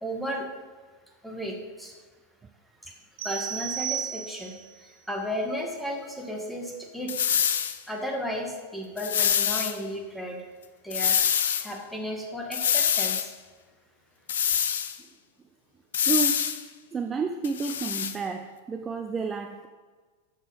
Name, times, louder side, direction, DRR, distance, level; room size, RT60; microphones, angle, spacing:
voice 1, 0.0-0.5 1.2-1.9 2.8-3.0 3.2-7.3 7.9-10.5 10.8-11.2 11.6-13.3, equal, ahead, 0 dB, 1.9 m, -34 dB
sound 1, 3.2-4.7, right 9 dB, 60° right, 1.1 m, -33 dB
sound 2, 7.1-7.8 9.0-9.7 10.9-11.7 12.5-13.3 14.3-15.0 15.9-16.6 17.4-18.1, left 8 dB, 60° left, 0.6 m, -25 dB
voice 2, 16.0-16.5 16.9-19.7, right 5 dB, 20° right, 6 dB, 0.5 m, -31 dB
13.0 x 5.2 x 5.6 m, 1.4 s
figure-of-eight pair, 90°, 0 cm